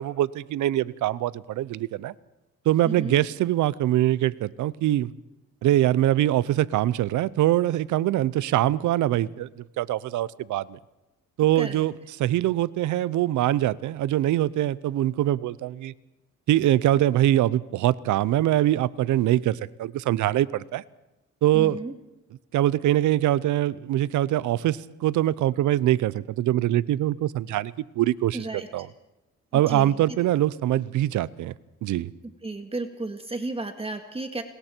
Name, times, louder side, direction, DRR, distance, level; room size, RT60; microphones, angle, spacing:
voice 1, 0.0-2.1 2.7-5.1 5.6-9.5 9.8-10.8 11.4-11.9 12.2-15.9 16.5-20.8 21.4-21.8 22.5-28.5 28.7-28.9 29.5-31.5 31.8-32.1, right 13 dB, 80° right, 20 dB, 0.7 m, -23 dB
voice 2, 2.8-3.2 11.6-11.8 21.5-21.9 28.3-28.9 29.5-30.0 32.4-34.4, right 2 dB, 20° right, 6 dB, 1.9 m, -33 dB
29.5 x 20.0 x 4.5 m, 0.99 s
cardioid pair, 90°, 30 cm